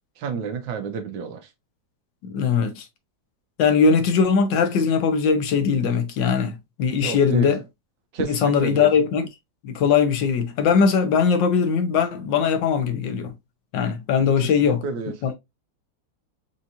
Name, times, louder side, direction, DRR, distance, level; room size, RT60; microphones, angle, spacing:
voice 1, 0.2-1.5 7.0-7.5 8.1-8.9 14.8-15.1, right 4 dB, 90° right, 1.6 m, -29 dB
voice 2, 2.2-2.8 3.6-7.6 8.3-9.3 9.6-13.3 13.7-14.8 15.2-15.4, left 6 dB, 75° left, 1.4 m, -20 dB
4.8 x 2.8 x 2.6 m
omnidirectional pair, 2.0 m